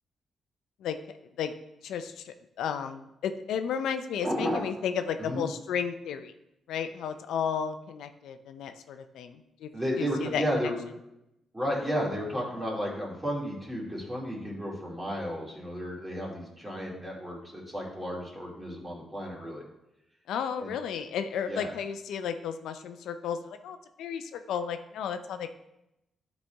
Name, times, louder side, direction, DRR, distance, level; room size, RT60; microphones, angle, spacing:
voice 1, 1.8-6.3 6.7-9.7 10.0-10.4 20.3-25.5, left 7 dB, 90° left, 8 dB, 0.5 m, -33 dB
voice 2, 4.2-4.6 5.2-5.4 9.7-10.8 11.5-19.6 20.6-20.7 21.5-21.7, equal, 15° right, -3 dB, 2.5 m, -33 dB
11.0 x 4.1 x 3.4 m, 0.87 s
cardioid pair, 90°, 0 cm